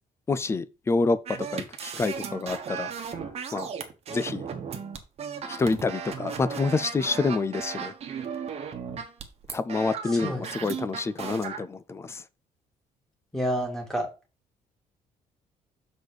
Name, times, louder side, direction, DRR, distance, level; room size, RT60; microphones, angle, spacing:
voice 1, 0.3-2.9 3.5-3.7 4.1-4.5 5.5-7.9 9.5-12.2, left 3 dB, 20° left, 0.4 m, -27 dB
sound 1, 1.3-11.6, right 7 dB, 45° right, 1.2 m, -36 dB
voice 2, 10.1-10.8 13.3-14.1, equal, 5° left, 2.1 m, -30 dB
6.6 x 4.1 x 4.8 m
cardioid pair, 160°, 14 cm